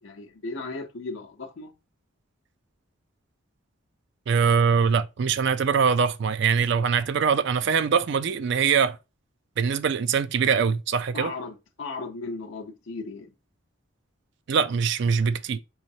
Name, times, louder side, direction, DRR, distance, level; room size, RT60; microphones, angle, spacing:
voice 1, 0.0-1.7 11.1-13.3, left 3 dB, 65° left, 0.6 m, -36 dB
voice 2, 4.3-9.0 9.6-11.3 14.5-15.6, right 6 dB, 55° right, 0.3 m, -23 dB
3.9 x 3.1 x 2.7 m
head